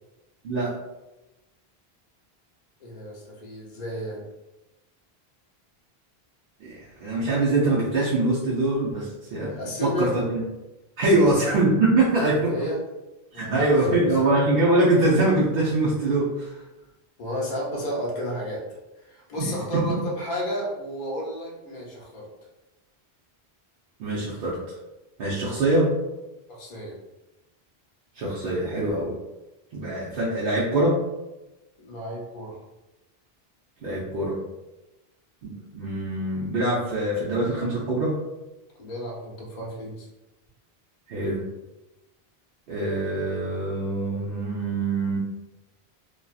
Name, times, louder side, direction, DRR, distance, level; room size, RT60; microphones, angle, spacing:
voice 1, 2.8-4.2 9.5-10.1 11.0-11.4 12.5-12.8 13.3-14.3 17.2-22.3 26.5-27.0 31.8-32.6 38.8-40.1, equal, 50° left, -2 dB, 0.7 m, -32 dB
voice 2, 6.6-10.4 11.0-12.5 13.3-16.6 19.4-19.5 24.0-24.6 25.2-25.9 28.2-29.1 29.7-31.0 33.8-34.4 35.4-38.1 41.1-41.4 42.7-45.2, right 2 dB, 70° right, -6 dB, 0.7 m, -23 dB
2.5 x 2.3 x 2.3 m, 1.0 s
omnidirectional pair, 1.1 m